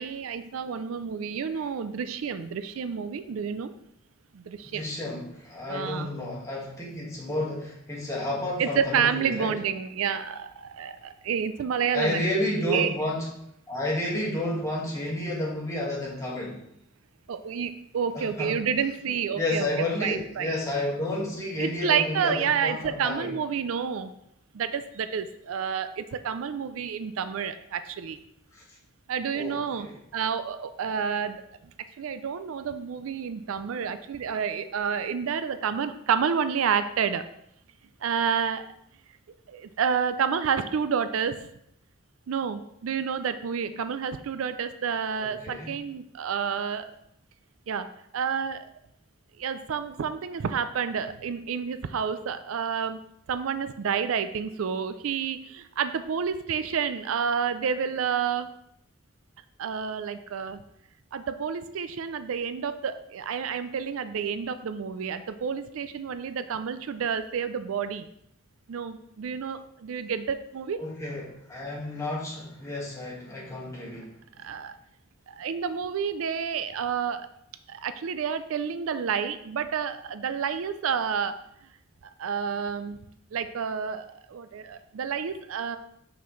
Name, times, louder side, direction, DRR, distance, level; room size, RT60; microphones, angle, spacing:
voice 1, 0.0-3.7 4.3-4.9 5.7-6.1 8.6-12.2 12.6-12.9 17.3-20.6 21.6-24.1 24.5-28.2 29.1-29.9 30.1-31.4 32.0-37.2 38.0-38.7 39.5-41.5 42.3-46.9 47.7-47.9 48.1-48.6 49.4-53.0 53.3-58.5 59.6-60.6 61.1-68.1 68.7-70.8 74.4-74.7 75.3-77.3 77.7-81.4 82.2-83.0 83.3-85.8, right 7 dB, 80° right, 11 dB, 0.4 m, -29 dB
voice 2, 4.6-9.5 11.9-13.3 13.7-16.6 18.1-18.5 19.3-23.3 28.5-28.6 29.3-30.0 45.2-45.7 70.8-74.1, left 1 dB, 15° left, -5 dB, 1.7 m, -31 dB
6.0 x 5.8 x 3.2 m, 0.74 s
head